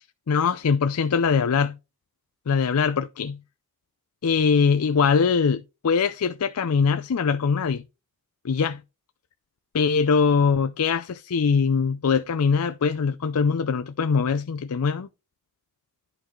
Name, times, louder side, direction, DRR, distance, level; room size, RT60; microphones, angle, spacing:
voice 1, 0.3-1.8 2.5-3.4 4.2-7.8 8.4-8.8 9.7-15.1, left 5 dB, 80° left, 0.5 m, -22 dB
11.0 x 4.7 x 3.8 m
head